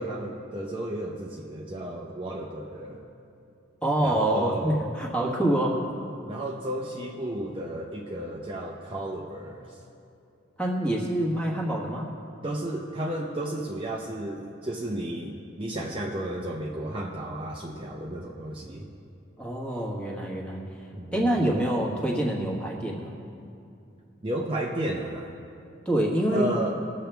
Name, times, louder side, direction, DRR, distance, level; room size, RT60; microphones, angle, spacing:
voice 1, 0.0-3.0 4.0-4.8 6.3-9.8 12.4-18.9 20.9-21.4 24.2-25.3 26.3-26.8, right 1 dB, 25° right, -1 dB, 0.7 m, -33 dB
voice 2, 3.8-5.8 10.6-12.1 19.4-20.6 21.1-23.1 25.8-26.5, right 1 dB, 5° left, -2 dB, 1.4 m, -26 dB
21.0 x 7.4 x 3.4 m, 2.6 s
head